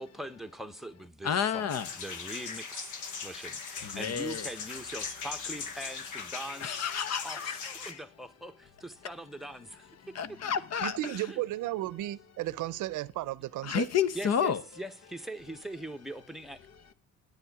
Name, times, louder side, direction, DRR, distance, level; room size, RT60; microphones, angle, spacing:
voice 1, 0.0-2.9 3.2-6.8 7.2-9.9 11.3-11.4 14.1-16.6, right 1 dB, ahead, 1.0 m, -42 dB
voice 2, 1.2-1.9 3.8-4.5 6.6-8.0 10.1-11.0 13.6-14.6, left 8 dB, 55° left, 1.0 m, -30 dB
sound 1, 1.7-7.9, left 5 dB, 80° left, 1.4 m, -40 dB
voice 3, 10.8-13.9, right 16 dB, 80° right, 0.6 m, -34 dB
9.9 x 9.3 x 4.8 m
cardioid pair, 90°, 30 cm